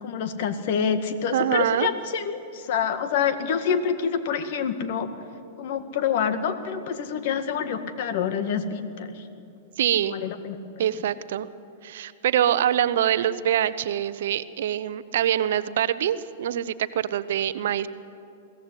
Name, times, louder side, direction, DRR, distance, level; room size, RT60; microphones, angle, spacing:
voice 1, 0.0-5.1 5.6-9.3 10.1-10.8, left 7 dB, 55° left, 9 dB, 1.9 m, -27 dB
voice 2, 1.3-1.9 9.8-10.1 10.8-11.5 11.8-17.9, right 10 dB, 65° right, 14 dB, 0.8 m, -24 dB
22.5 x 16.0 x 9.8 m, 2.6 s
hypercardioid pair, 105°, 0 cm